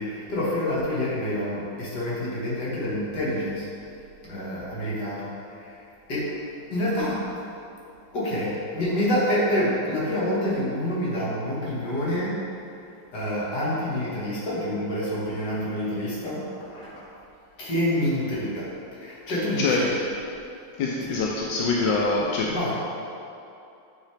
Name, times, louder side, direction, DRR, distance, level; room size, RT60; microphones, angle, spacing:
voice 1, 0.0-3.7 4.2-5.8 6.1-6.4 6.7-7.3 8.1-12.4 13.1-17.1 17.6-19.9 22.5-22.7, left 1 dB, 50° left, -7 dB, 2.3 m, -27 dB
voice 2, 19.3-20.1 20.8-22.7, left 3 dB, 70° left, -2 dB, 1.2 m, -25 dB
8.5 x 5.8 x 3.4 m, 2.7 s
omnidirectional pair, 2.4 m